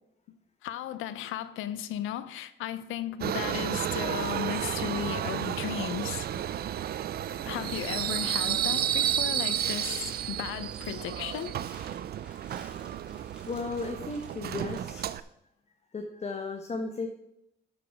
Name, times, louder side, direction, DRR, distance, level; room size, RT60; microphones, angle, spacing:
voice 1, 0.6-6.3 7.5-11.6, left 11 dB, 85° left, 0.5 m, -35 dB
Subway metro underground, 3.2-15.2, right 11 dB, 50° right, 0.4 m, -32 dB
sound 1, 7.1-15.1, equal, 5° right, 2.6 m, -54 dB
voice 2, 13.5-15.2 15.9-17.1, left 3 dB, 35° left, 1.0 m, -35 dB
12.5 x 5.0 x 4.7 m
cardioid pair, 90°, 20 cm